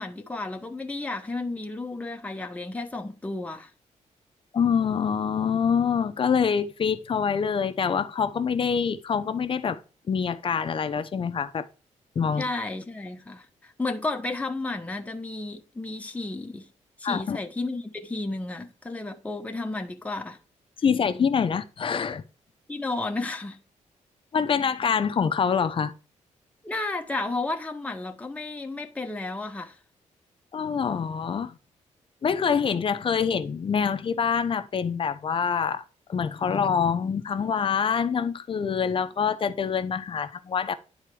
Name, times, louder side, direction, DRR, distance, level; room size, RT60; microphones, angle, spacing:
voice 1, 0.0-3.7 12.4-16.7 17.0-20.4 22.7-23.6 26.6-29.8, left 2 dB, 10° left, 1.0 m, -32 dB
voice 2, 4.5-9.8 10.1-11.7 12.1-12.5 17.0-17.4 20.8-22.2 24.3-25.9 30.5-31.6 32.2-35.8 36.1-40.7, left 6 dB, 40° left, 0.9 m, -25 dB
10.0 x 4.0 x 4.8 m
cardioid pair, 125°, 13 cm